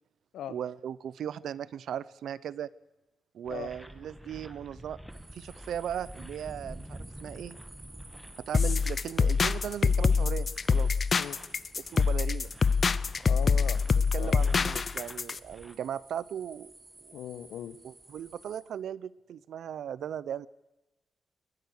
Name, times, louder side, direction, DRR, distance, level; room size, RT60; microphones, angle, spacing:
voice 1, 0.5-2.7 3.3-5.0 5.3-7.6 8.5-10.9 11.8-12.5 14.1-16.7 17.0-17.2 17.8-20.5, right 9 dB, 65° right, 20 dB, 0.6 m, -37 dB
sound 1, 3.5-15.7, equal, ahead, 1.3 m, -49 dB
sound 2, 5.1-18.6, right 2 dB, 20° right, 4.0 m, -55 dB
sound 3, 8.5-15.4, left 5 dB, 35° left, 0.6 m, -25 dB
voice 2, 13.2-13.8 14.2-14.4 17.1-17.8, left 10 dB, 85° left, 14 dB, 1.3 m, -39 dB
21.5 x 19.0 x 6.6 m, 1.0 s
cardioid pair, 145°, 0 cm